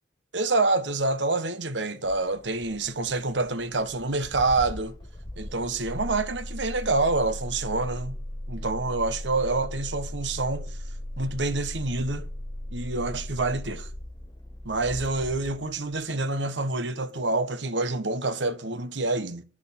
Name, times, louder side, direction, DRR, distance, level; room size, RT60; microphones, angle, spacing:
voice 1, 0.3-4.9 5.4-8.2 8.5-10.8 11.2-12.3 12.7-13.9 14.6-19.4, right 3 dB, 80° right, 1.3 m, -27 dB
Engine starting, 2.0-16.2, left 1 dB, 25° left, 1.2 m, -38 dB
11.0 x 6.4 x 7.1 m
head